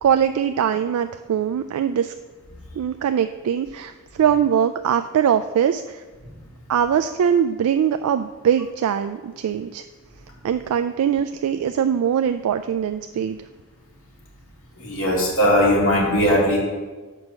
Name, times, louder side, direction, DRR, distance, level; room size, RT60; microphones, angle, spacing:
voice 1, 0.0-2.1 2.7-6.0 6.7-9.8 10.4-13.4, right 8 dB, 80° right, 9 dB, 0.3 m, -22 dB
voice 2, 14.8-16.6, equal, 65° left, -3 dB, 2.1 m, -19 dB
7.5 x 4.6 x 5.9 m, 1.3 s
head